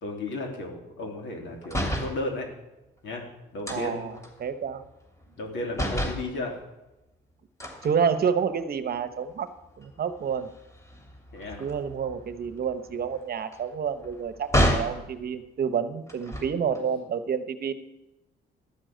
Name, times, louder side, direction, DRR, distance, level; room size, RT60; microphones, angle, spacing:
voice 1, 0.0-2.5 3.0-4.1 5.4-6.6 11.3-11.6 16.7-16.8, left 2 dB, 70° left, 2 dB, 3.3 m, -34 dB
sound 1, 1.6-2.2 3.7-5.5 5.7-6.3 7.6-8.6 9.1-9.3 9.6-15.0 16.1-16.8, equal, 15° left, 2.8 m, -31 dB
voice 2, 3.7-4.1 4.4-4.8 7.8-9.5 9.8-10.5 11.6-17.7, right 7 dB, 50° right, 10 dB, 1.0 m, -29 dB
13.0 x 6.3 x 9.2 m, 0.98 s
cardioid pair, 90°, 20 cm